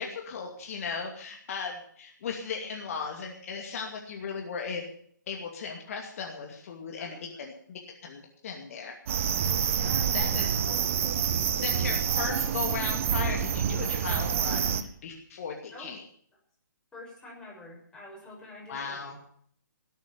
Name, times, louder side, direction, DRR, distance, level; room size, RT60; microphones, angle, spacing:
voice 1, 0.0-4.8 5.3-9.0 10.1-10.5 11.6-14.7 15.0-16.0 18.7-19.2, left 5 dB, 45° left, 1 dB, 2.5 m, -36 dB
voice 2, 7.0-7.5 9.7-10.9 15.7-15.9 16.9-19.2, left 1 dB, 5° left, -4 dB, 6.2 m, -47 dB
sound 1, 9.1-14.8, right 8 dB, 40° right, 1.3 m, -27 dB
18.0 x 9.1 x 7.2 m, 0.62 s
figure-of-eight pair, 135°, 10 cm